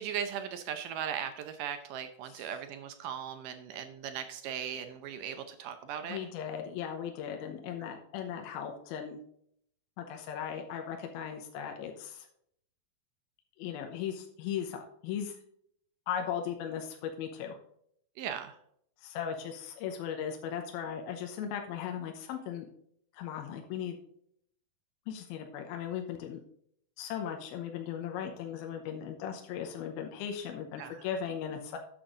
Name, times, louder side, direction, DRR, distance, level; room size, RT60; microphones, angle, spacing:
voice 1, 0.0-6.2 18.2-18.6 30.8-31.0, right 8 dB, 75° right, 8 dB, 2.0 m, -38 dB
voice 2, 6.0-9.2 10.0-12.3 13.6-15.4 16.1-17.6 19.0-22.7 23.1-24.0 25.1-26.4 27.0-31.8, left 8 dB, 80° left, 3 dB, 2.7 m, -37 dB
8.9 x 6.9 x 3.7 m, 0.69 s
omnidirectional pair, 4.5 m